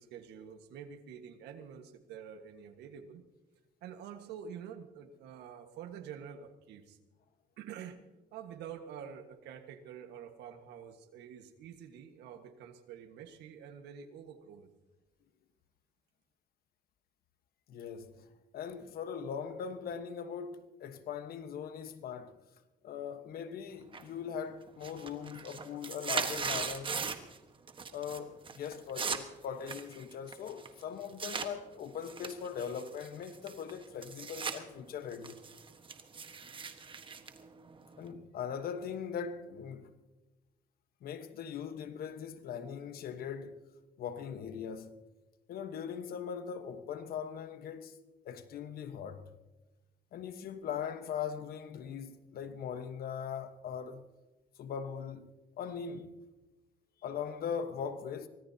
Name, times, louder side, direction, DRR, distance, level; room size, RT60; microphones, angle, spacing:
voice 1, 0.0-3.2 3.8-7.0 7.6-8.0 8.3-14.7, right 8 dB, 80° right, 1.6 m, -47 dB
voice 2, 17.7-18.2 18.5-22.4 22.8-27.1 27.9-35.4 38.0-39.9 41.0-43.6 44.0-44.9 45.5-48.0 48.2-49.3 50.1-54.0 54.6-55.3 55.6-56.1 57.0-58.3, left 7 dB, 60° left, 1.3 m, -40 dB
sound 1, 23.9-24.4 24.7-27.4 27.7-28.2 28.5-31.5 32.0-34.6 34.9-38.1, right 5 dB, 30° right, 1.4 m, -39 dB
24.5 x 18.0 x 2.9 m
cardioid pair, 110°, 17 cm